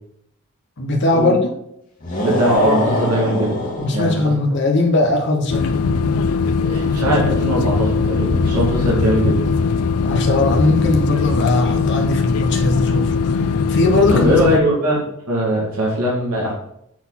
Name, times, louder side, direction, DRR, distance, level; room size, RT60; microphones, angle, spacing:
voice 1, 0.8-1.5 3.8-5.7 10.0-14.3, left 2 dB, 50° left, 2 dB, 0.9 m, -19 dB
sound 1, 2.0-4.4, left 1 dB, 35° left, 1.7 m, -23 dB
voice 2, 2.2-3.6 3.9-4.3 6.5-9.4 14.1-16.5, equal, 85° right, -4 dB, 2.2 m, -20 dB
sound 2, 5.5-14.6, left 4 dB, 80° left, 0.5 m, -19 dB
6.2 x 4.0 x 5.7 m, 0.77 s
head